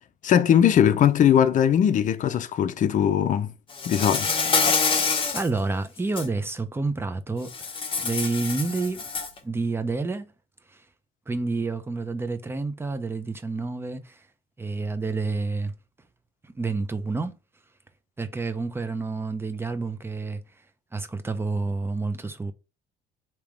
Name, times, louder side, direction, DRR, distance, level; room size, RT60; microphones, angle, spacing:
voice 1, 0.2-3.5 3.9-4.4, left 9 dB, 50° left, 0.6 m, -20 dB
Insect, 3.7-5.5 6.0-6.3 7.5-9.4, left 5 dB, 30° left, 1.2 m, -26 dB
voice 2, 5.3-9.0 9.4-10.3 10.7-10.8 11.3-14.3 14.6-15.7 16.4-17.4 18.2-20.4 20.9-22.5, right 3 dB, 15° right, 0.6 m, -29 dB
3.5 x 2.9 x 4.7 m
cardioid pair, 110°, 17 cm